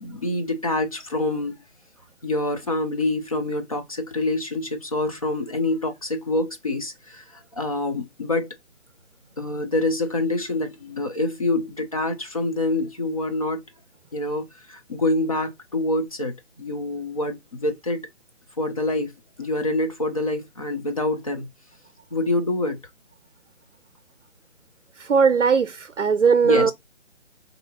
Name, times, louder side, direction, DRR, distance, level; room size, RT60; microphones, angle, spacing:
voice 1, 0.0-1.5 2.2-8.5 9.4-13.6 14.1-18.1 18.6-19.1 19.4-21.5 22.1-22.8 26.4-26.7, left 2 dB, 30° left, 0.6 m, -26 dB
voice 2, 25.0-26.7, right 5 dB, 85° right, 0.5 m, -19 dB
3.5 x 2.8 x 4.1 m
figure-of-eight pair, 150°, 35 cm